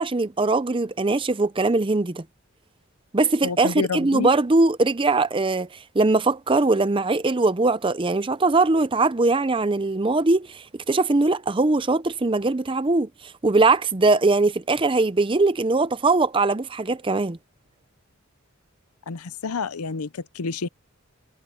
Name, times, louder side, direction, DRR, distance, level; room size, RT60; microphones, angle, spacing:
voice 1, 0.0-2.2 3.1-5.7 5.9-17.4, right 3 dB, 25° right, 0.6 m, -21 dB
voice 2, 3.4-4.3 19.1-20.7, left 5 dB, 85° left, 0.7 m, -29 dB
head